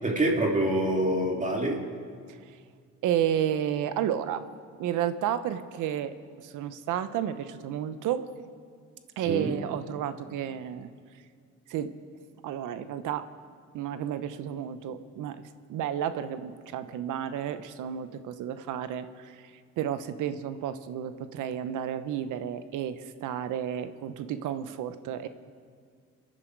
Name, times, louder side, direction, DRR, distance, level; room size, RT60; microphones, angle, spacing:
voice 1, 0.0-1.8 9.3-9.5, right 1 dB, 25° right, 0 dB, 2.6 m, -26 dB
voice 2, 2.3-2.6 3.0-4.5 4.8-8.3 9.2-11.2 11.7-11.9 12.4-13.3 13.7-25.3, right 10 dB, 85° right, 11 dB, 0.9 m, -32 dB
27.0 x 10.5 x 4.7 m, 2.1 s
cardioid pair, 90°, 30 cm